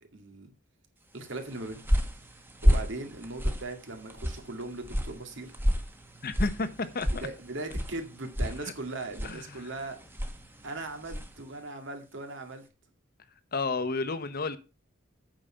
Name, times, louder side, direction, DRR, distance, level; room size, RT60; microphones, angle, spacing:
voice 1, 0.1-0.5 1.1-1.9 2.6-5.5 7.2-10.0 10.6-12.7, right 2 dB, 65° right, 2.3 m, -39 dB
sound 1, 1.3-11.4, equal, 10° right, 1.3 m, -31 dB
voice 2, 6.2-7.1 8.6-8.7 9.2-9.7 13.5-14.6, left 3 dB, 50° left, 1.0 m, -31 dB
8.9 x 6.7 x 5.6 m
head